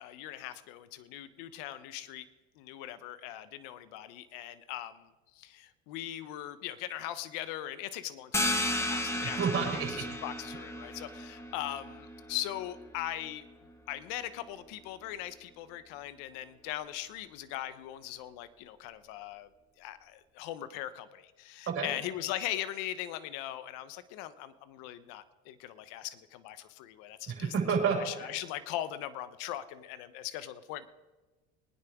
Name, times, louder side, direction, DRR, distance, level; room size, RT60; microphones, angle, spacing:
voice 1, 0.0-2.3 2.6-5.1 5.3-13.4 13.9-19.5 19.8-27.5 27.9-30.9, left 13 dB, 75° left, 13 dB, 1.1 m, -40 dB
sound 1, 8.3-13.7, left 1 dB, 10° left, 1.4 m, -35 dB
voice 2, 9.2-10.0 21.7-21.9 27.3-28.3, right 6 dB, 40° right, -1 dB, 5.8 m, -30 dB
23.0 x 9.9 x 3.7 m, 1.2 s
supercardioid pair, 115°, 34 cm